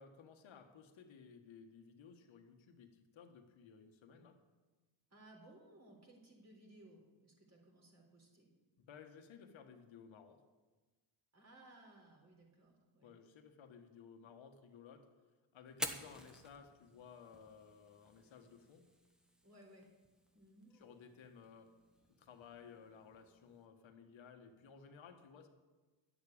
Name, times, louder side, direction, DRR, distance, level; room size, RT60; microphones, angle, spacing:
voice 1, 0.0-4.4 8.8-10.4 13.0-15.1 15.5-18.9 20.7-21.7 22.2-25.5, left 6 dB, 65° left, 5 dB, 1.5 m, -57 dB
voice 2, 5.1-8.5 11.3-13.1 19.4-19.9 20.3-20.7, right 1 dB, 30° right, 0 dB, 4.0 m, -61 dB
Fire, 15.7-23.6, equal, ahead, 1.3 m, -51 dB
11.0 x 7.1 x 8.6 m, 1.2 s
cardioid pair, 85°, 49 cm